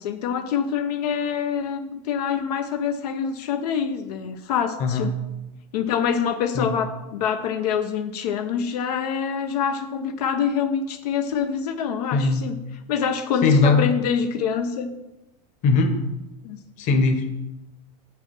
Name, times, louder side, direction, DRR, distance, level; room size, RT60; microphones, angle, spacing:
voice 1, 0.0-5.1 5.7-12.6 12.9-14.9 16.4-16.6, left 7 dB, 85° left, 8 dB, 0.8 m, -25 dB
voice 2, 4.8-5.1 6.5-6.7 12.1-12.4 13.4-13.9 15.6-16.0 16.8-17.4, left 4 dB, 35° left, 6 dB, 1.2 m, -20 dB
7.7 x 6.0 x 6.0 m, 0.97 s
supercardioid pair, 160°, 20 cm